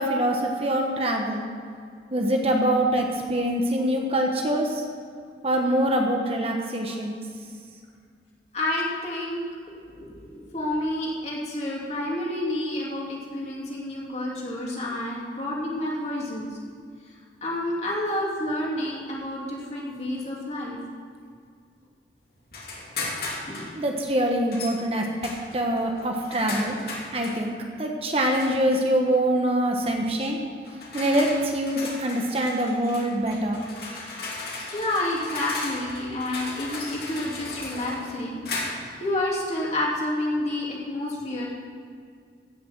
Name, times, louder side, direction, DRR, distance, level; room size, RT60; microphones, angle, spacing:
voice 1, 0.0-1.4 2.1-4.8 5.4-7.2 23.7-26.8 27.1-30.4 30.9-33.6, right 1 dB, 35° right, 2 dB, 1.2 m, -24 dB
voice 2, 8.5-9.4 9.7-16.5 17.4-20.8 23.4-23.6 34.7-41.5, left 1 dB, 40° left, -4 dB, 2.8 m, -29 dB
sound 1, 22.5-23.7 24.5-24.8 25.2-27.4 28.2-28.8 29.8-30.0 30.6-39.0, left 3 dB, 55° left, 2.7 m, -36 dB
16.0 x 6.9 x 7.4 m, 2.2 s
head